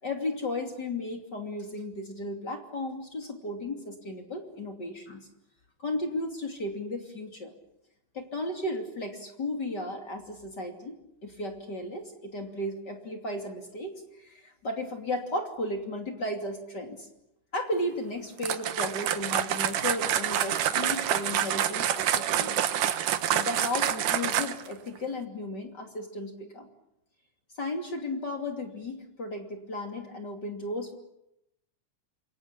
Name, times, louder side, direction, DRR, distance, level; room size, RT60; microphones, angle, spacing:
voice 1, 0.0-5.3 5.8-7.5 8.1-17.1 17.5-22.6 23.3-26.7 27.5-30.9, left 1 dB, 35° left, 3 dB, 3.2 m, -35 dB
sound 1, 18.4-24.7, right 10 dB, 85° right, 2.9 m, -27 dB
28.0 x 23.0 x 8.7 m, 0.85 s
omnidirectional pair, 3.6 m